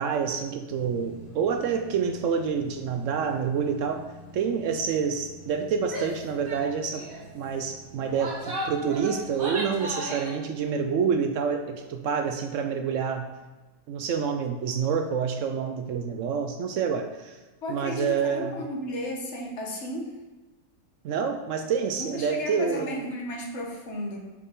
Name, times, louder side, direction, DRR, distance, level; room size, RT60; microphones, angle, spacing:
voice 1, 0.0-4.0 4.3-7.1 7.3-13.3 13.9-17.4 17.7-18.6 21.0-23.0, right 6 dB, 70° right, 6 dB, 0.8 m, -28 dB
sound 1, 0.7-9.8, left 1 dB, 75° left, 1.6 m, -48 dB
Female speech woman speaking / Yell, 5.9-6.2 6.5-6.6 6.9-7.2 7.9-10.4, right 1 dB, 40° right, 1.4 m, -35 dB
voice 2, 17.6-20.2 22.0-24.2, left 1 dB, 55° left, 0 dB, 1.2 m, -34 dB
6.8 x 5.1 x 3.6 m, 1.2 s
omnidirectional pair, 1.5 m